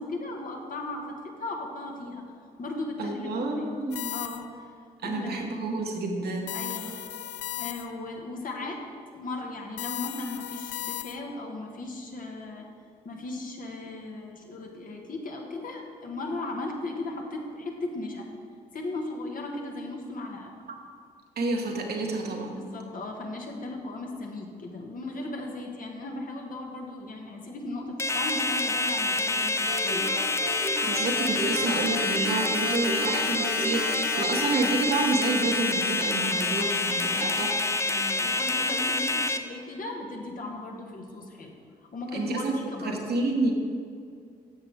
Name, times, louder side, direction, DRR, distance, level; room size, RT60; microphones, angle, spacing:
voice 1, 0.0-2.2 2.6-3.7 4.1-4.7 5.0-5.4 6.5-7.0 7.6-8.8 9.1-12.7 13.0-18.3 18.7-20.5 22.5-30.1 31.6-32.3 36.1-37.4 37.9-41.5 41.9-43.0, left 2 dB, 45° left, 1 dB, 1.4 m, -37 dB
voice 2, 3.0-4.1 5.0-6.8 21.4-22.6 30.8-37.6 42.1-43.5, right 2 dB, 55° right, 1 dB, 1.3 m, -29 dB
sound 1, 3.9-4.7 6.5-8.1 9.8-11.4, left 14 dB, 65° left, 0.4 m, -36 dB
sound 2, 28.0-39.4, left 3 dB, 15° left, 0.6 m, -27 dB
sound 3, 29.7-35.4, right 2 dB, 75° right, 1.6 m, -35 dB
9.6 x 7.4 x 3.4 m, 2.2 s
hypercardioid pair, 40°, 20 cm